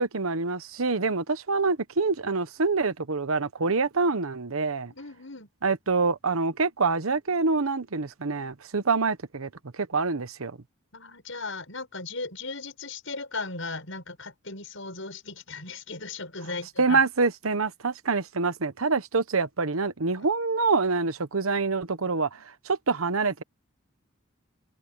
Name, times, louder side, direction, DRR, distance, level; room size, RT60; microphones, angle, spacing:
voice 1, 0.0-4.9 5.6-10.6 16.8-23.4, right 4 dB, 85° right, 1.1 m, -26 dB
voice 2, 4.9-5.5 10.9-17.0 22.3-22.4, left 3 dB, 65° left, 7.1 m, -37 dB
head